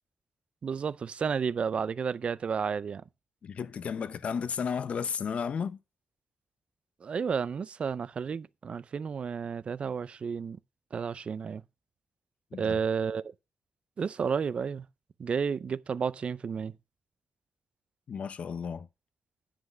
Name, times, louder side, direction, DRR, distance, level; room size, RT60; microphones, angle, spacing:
voice 1, 0.6-3.0 7.0-10.6 10.9-11.6 12.5-13.3 14.0-14.9 15.2-16.7, right 6 dB, 50° right, 0.5 m, -31 dB
voice 2, 3.4-5.8 12.5-12.8 18.1-18.9, left 6 dB, 60° left, 0.7 m, -33 dB
10.0 x 5.9 x 5.1 m
wide cardioid pair, 125°, 3 cm